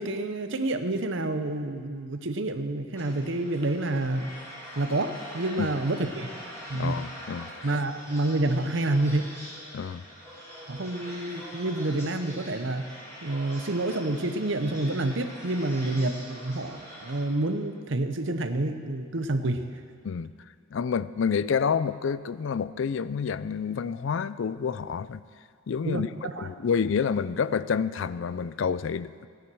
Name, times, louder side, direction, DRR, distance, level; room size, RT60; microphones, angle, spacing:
voice 1, 0.0-4.3 4.7-6.3 6.7-7.0 7.6-9.3 10.7-12.8 13.2-19.7 25.8-26.5, right 2 dB, 60° right, 8 dB, 0.8 m, -28 dB
sound 1, 2.9-17.2, equal, 15° left, 3.2 m, -44 dB
voice 2, 6.7-7.7 9.7-10.0 20.0-20.3 20.7-25.2 25.7-29.3, left 6 dB, 60° left, 16 dB, 0.4 m, -28 dB
14.5 x 10.5 x 6.2 m, 2.1 s
head